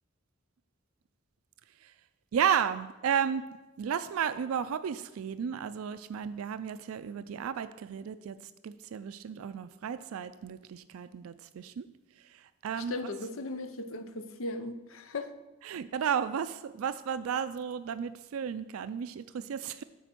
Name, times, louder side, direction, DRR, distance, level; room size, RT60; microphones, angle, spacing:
voice 1, 2.3-3.4 3.8-11.9 12.2-13.1 15.6-19.8, right 8 dB, 90° right, 13 dB, 0.4 m, -33 dB
voice 2, 12.8-15.3, left 2 dB, 70° left, 9 dB, 0.7 m, -37 dB
9.2 x 4.5 x 5.9 m, 1.1 s
head